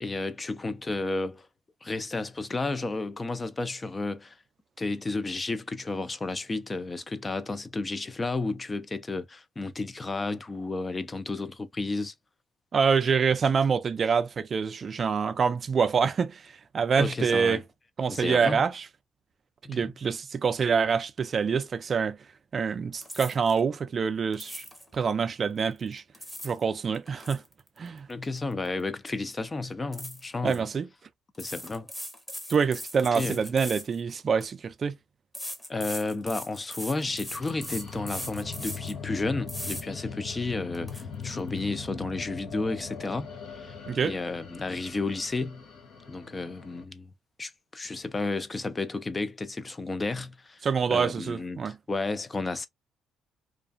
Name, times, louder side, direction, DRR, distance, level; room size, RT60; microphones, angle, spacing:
voice 1, 0.0-1.5 1.8-4.4 4.8-12.1 17.0-17.6 18.1-18.6 19.6-19.9 28.1-30.7 31.4-31.9 33.1-33.4 35.7-45.6 46.1-47.1 47.4-52.7, left 3 dB, 25° left, 0.4 m, -32 dB
voice 2, 12.7-17.6 18.0-18.9 19.7-22.2 22.5-24.6 24.9-26.0 26.4-27.4 27.8-28.1 30.4-30.9 32.5-35.0 43.9-44.1 50.6-51.8, right 6 dB, 45° right, 0.3 m, -26 dB
sound 1, 23.0-23.6 24.3-24.9 25.9-26.6 26.9-28.8 29.1-29.3 29.9-30.6 31.3-34.5 35.3-39.0 39.5-39.8 40.3-40.4 40.7-41.0, equal, 10° left, 0.8 m, -39 dB
sound 2, 37.1-46.8, left 6 dB, 75° left, 0.8 m, -41 dB
2.4 x 2.2 x 2.4 m
cardioid pair, 90°, 0 cm